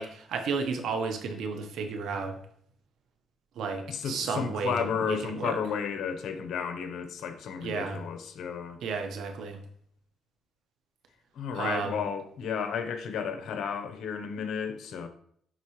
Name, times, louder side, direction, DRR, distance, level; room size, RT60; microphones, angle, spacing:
voice 1, 0.0-2.4 3.6-5.6 7.6-8.0 8.8-9.6 11.5-11.9, right 5 dB, 75° right, 1.1 m, -33 dB
voice 2, 3.9-8.8 11.3-15.1, left 6 dB, 70° left, 1.0 m, -33 dB
10.5 x 4.0 x 3.2 m
cardioid pair, 90°, 0 cm